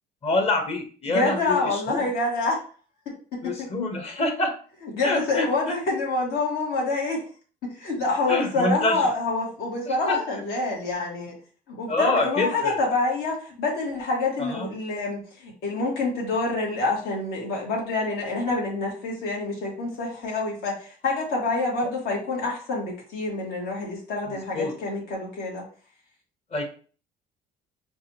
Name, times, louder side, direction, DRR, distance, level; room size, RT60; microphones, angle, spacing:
voice 1, 0.2-2.1 3.4-4.5 5.0-5.5 8.3-9.0 9.9-10.2 11.9-12.7 14.4-14.7 24.5-24.7 26.5-26.6, left 2 dB, 40° left, 3 dB, 1.1 m, -26 dB
voice 2, 1.1-2.6 3.3-3.7 4.9-7.2 7.6-11.3 11.7-25.6, left 3 dB, 75° left, -2 dB, 1.7 m, -27 dB
4.7 x 2.6 x 2.9 m, 0.41 s
cardioid pair, 110°, 17 cm